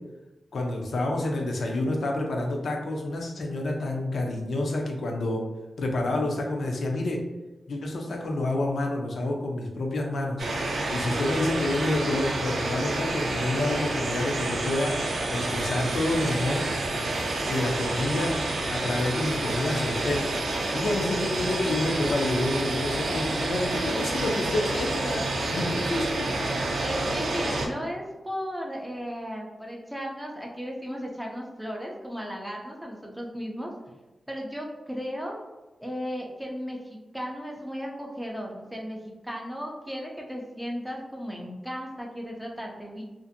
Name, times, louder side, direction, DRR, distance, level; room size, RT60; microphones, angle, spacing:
voice 1, 0.5-5.4 5.8-7.2 7.7-10.4 10.9-14.9 15.3-16.6 17.4-18.3 18.7-20.3 20.7-27.2, left 2 dB, 65° left, 1 dB, 0.4 m, -28 dB
sound 1, 10.4-27.7, right 2 dB, 85° right, 0.4 m, -29 dB
voice 2, 26.8-33.7 34.3-35.4 35.8-43.0, equal, ahead, -1 dB, 0.4 m, -35 dB
2.5 x 2.4 x 2.5 m, 1.1 s
wide cardioid pair, 180°, 0 cm